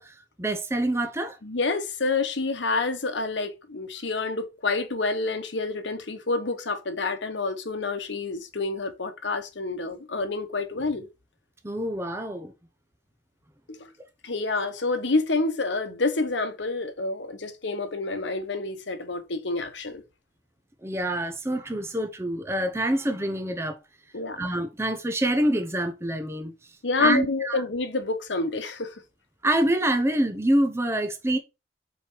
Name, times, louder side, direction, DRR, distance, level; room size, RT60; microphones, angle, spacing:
voice 1, 0.0-1.4 11.6-12.5 20.8-23.8 24.4-26.5 27.0-27.6 29.4-31.4, right 1 dB, 15° right, 0.6 m, -26 dB
voice 2, 1.4-11.1 13.7-13.9 14.2-20.0 24.1-24.4 26.8-28.9, left 3 dB, 75° left, 1.1 m, -28 dB
5.5 x 4.4 x 4.5 m
head